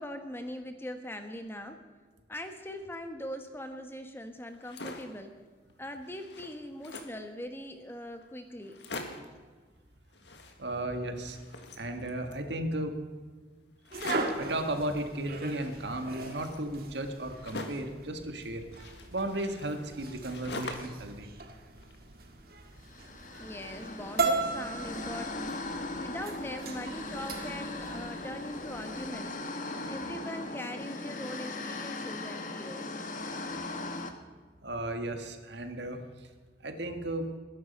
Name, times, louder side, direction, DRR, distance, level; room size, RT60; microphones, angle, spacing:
voice 1, 0.0-1.8 2.3-5.4 5.8-8.9 23.4-25.6 26.0-29.4 29.9-32.9, left 1 dB, 10° left, 6 dB, 1.2 m, -41 dB
sound 1, 4.5-5.2 5.7-5.8 6.0-7.2 7.9-8.0 8.2-8.3 8.6-9.4 10.1-10.9 11.1-12.5 13.8-14.5 15.4-18.0 18.7-21.1 21.4-22.3, left 2 dB, 70° left, 1.8 m, -43 dB
voice 2, 10.6-11.4 11.7-13.0 14.4-18.6 19.1-21.3 23.3-23.4 34.6-36.3 36.6-37.3, right 1 dB, 70° right, 6 dB, 1.7 m, -35 dB
sound 2, 13.9-29.2, right 3 dB, 55° right, 1.8 m, -38 dB
sound 3, 22.8-34.1, left 2 dB, 45° left, 1.4 m, -39 dB
21.0 x 11.0 x 5.5 m, 1.5 s
head